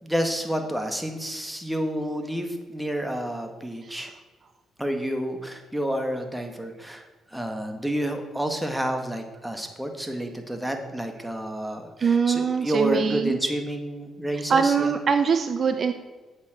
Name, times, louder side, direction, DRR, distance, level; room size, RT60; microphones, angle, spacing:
voice 1, 0.0-4.1 4.8-7.0 7.3-14.9, equal, 5° right, 5 dB, 1.8 m, -29 dB
voice 2, 12.0-13.4 14.5-15.9, right 6 dB, 45° right, 8 dB, 0.8 m, -23 dB
8.6 x 7.6 x 7.5 m, 1.3 s
cardioid pair, 90°, 0 cm